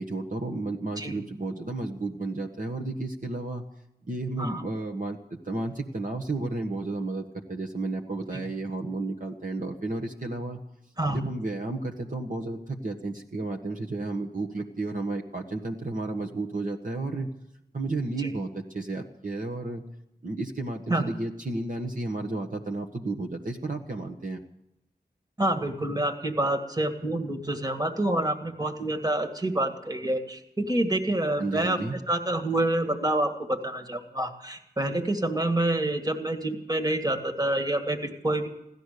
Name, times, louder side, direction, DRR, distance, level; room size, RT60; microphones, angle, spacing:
voice 1, 0.0-3.6 4.1-10.6 11.1-17.3 17.7-19.8 20.2-24.4 31.4-32.0, right 2 dB, 50° right, 1 dB, 1.4 m, -32 dB
voice 2, 11.0-11.3 18.2-18.3 20.9-21.0 25.4-31.8 32.1-38.5, right 1 dB, 20° right, 6 dB, 1.9 m, -27 dB
16.0 x 13.0 x 6.7 m, 0.87 s
wide cardioid pair, 60°, 17 cm